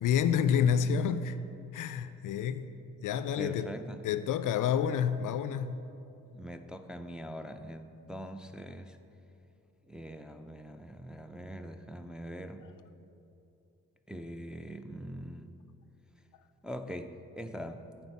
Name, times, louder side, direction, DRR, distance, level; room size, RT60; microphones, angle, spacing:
voice 1, 0.0-1.4 1.7-2.7 3.0-3.7 4.0-5.8, left 8 dB, 55° left, 12 dB, 0.5 m, -28 dB
voice 2, 0.6-1.0 3.4-4.1 6.3-9.0 9.9-12.7 14.1-15.6 16.6-17.8, equal, ahead, 5 dB, 0.5 m, -43 dB
9.1 x 4.5 x 7.0 m, 2.7 s
hypercardioid pair, 40°, 38 cm